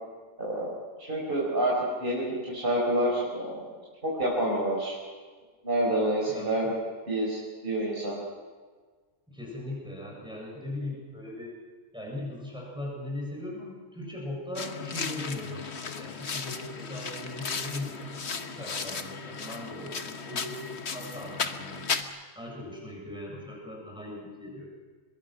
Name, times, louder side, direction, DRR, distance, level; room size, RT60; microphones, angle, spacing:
voice 1, 0.4-0.7 1.0-3.6 4.0-5.0 5.6-6.7 7.1-8.2, right 1 dB, 35° right, -6 dB, 5.3 m, -28 dB
voice 2, 6.3-6.7 9.3-11.6 11.9-20.6 20.9-21.9 22.4-24.7, left 1 dB, 5° right, -3 dB, 7.4 m, -39 dB
sound 1, 14.6-22.0, left 5 dB, 50° left, 1.4 m, -35 dB
25.0 x 21.5 x 6.1 m, 1.5 s
omnidirectional pair, 1.5 m